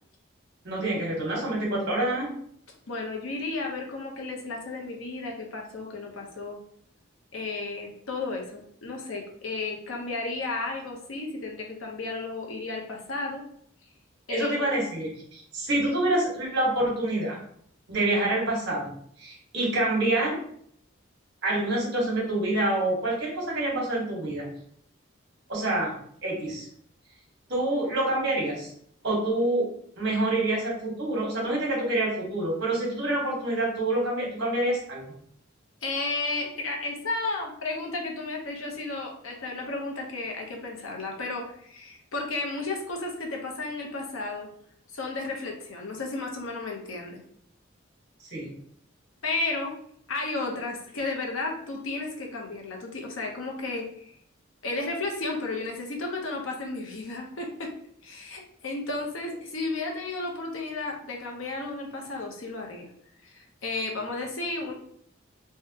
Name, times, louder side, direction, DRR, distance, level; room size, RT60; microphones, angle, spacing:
voice 1, 0.6-2.3 14.3-17.4 17.9-20.4 21.4-24.5 25.5-25.9 26.2-26.6 27.5-28.7 29.0-29.7 30.0-35.1 48.3-48.5, right 1 dB, 55° right, -3 dB, 1.4 m, -27 dB
voice 2, 2.9-6.6 7.3-13.4 14.3-14.7 35.8-44.5 44.9-47.2 49.2-49.8 50.1-54.1 54.6-57.7 58.0-62.9 63.2-64.7, left 3 dB, 80° left, 1 dB, 0.8 m, -33 dB
3.5 x 2.2 x 2.8 m, 0.66 s
head